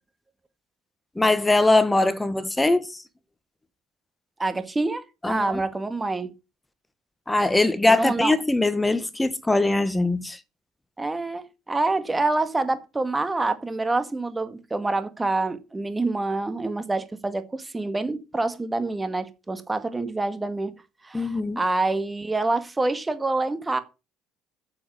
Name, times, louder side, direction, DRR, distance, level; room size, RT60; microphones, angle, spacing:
voice 1, 1.1-3.0 5.2-5.6 7.3-10.4 21.1-21.6, left 2 dB, 10° left, 1.5 m, -21 dB
voice 2, 4.4-6.3 7.9-8.3 11.0-20.7 21.0-23.8, right 2 dB, 15° right, 1.9 m, -26 dB
9.7 x 7.1 x 7.0 m
supercardioid pair, 90°, 0 cm